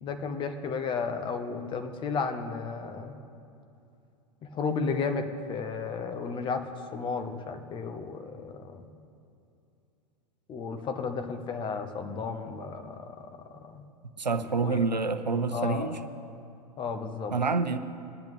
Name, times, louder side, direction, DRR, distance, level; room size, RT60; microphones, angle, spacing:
voice 1, 0.0-3.2 4.5-8.9 10.5-13.9 14.6-14.8 15.5-16.0 16.8-17.3, left 5 dB, 25° left, 7 dB, 1.0 m, -33 dB
voice 2, 14.2-16.0 17.3-17.8, right 4 dB, 80° right, 9 dB, 0.7 m, -27 dB
23.5 x 10.5 x 3.2 m, 2.7 s
figure-of-eight pair, 95°, 21 cm